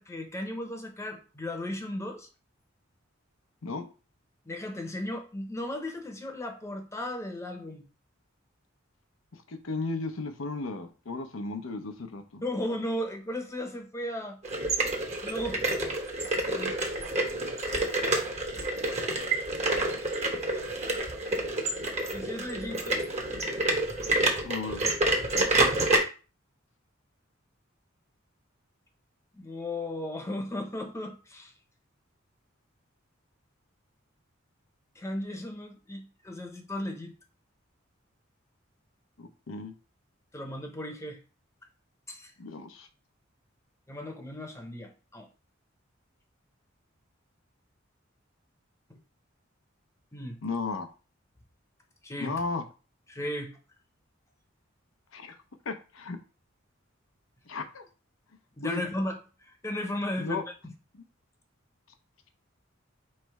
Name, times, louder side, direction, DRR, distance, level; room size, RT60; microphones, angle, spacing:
voice 1, 0.0-2.3 4.5-7.9 12.4-14.4 15.2-15.6 16.5-16.8 22.1-23.1 29.3-31.5 35.0-37.1 40.3-41.2 42.1-42.3 43.9-45.3 50.1-50.4 52.0-52.4 53.1-53.6 58.6-59.2 59.5-60.7, left 1 dB, 15° left, 4 dB, 0.8 m, -35 dB
voice 2, 9.5-12.4 20.9-21.0 24.4-24.8 39.2-39.7 42.4-42.9 50.4-50.9 52.2-52.6 55.1-55.3 55.7-56.2 57.5-57.9 58.6-58.8 60.2-60.4 60.9-61.0, left 3 dB, 85° left, 7 dB, 0.7 m, -35 dB
sound 1, 14.4-26.0, right 2 dB, 35° right, 0.9 m, -28 dB
3.2 x 3.1 x 4.6 m, 0.34 s
head